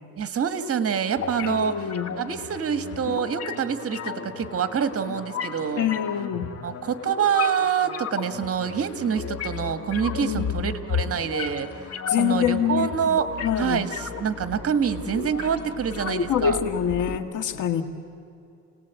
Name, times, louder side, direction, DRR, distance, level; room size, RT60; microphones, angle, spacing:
voice 1, 0.2-1.9 2.2-5.9 6.6-16.6, right 7 dB, 50° right, 10 dB, 1.7 m, -26 dB
sound 1, 1.2-17.2, left 6 dB, 50° left, 1.7 m, -34 dB
voice 2, 1.4-2.1 5.8-6.5 10.2-10.5 12.1-12.9 13.4-13.8 16.3-17.8, left 9 dB, 80° left, 8 dB, 1.8 m, -25 dB
30.0 x 18.5 x 8.2 m, 2.6 s
cardioid pair, 90°, 30 cm